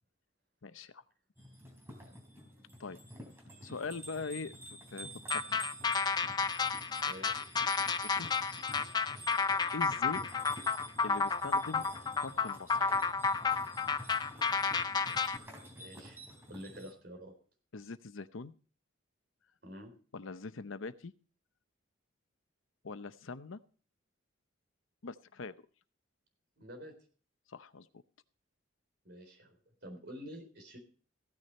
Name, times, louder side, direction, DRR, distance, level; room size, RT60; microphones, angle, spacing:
voice 1, 0.6-1.0 2.8-3.0 3.6-5.7 8.0-8.3 9.7-10.2 11.0-11.8 12.2-12.9 17.7-18.5 20.1-21.1 22.8-23.6 25.0-25.5 27.5-27.9, left 4 dB, 80° left, 13 dB, 0.7 m, -42 dB
sound 1, 1.4-16.9, right 1 dB, 10° right, 3.2 m, -49 dB
sound 2, 5.3-15.4, left 5 dB, 20° left, 0.5 m, -31 dB
voice 2, 7.0-7.4 15.8-16.2 16.5-17.3 19.6-19.9 26.6-26.9 29.0-29.6 29.8-30.8, equal, 55° right, 4 dB, 3.9 m, -48 dB
15.5 x 9.7 x 4.3 m, 0.40 s
head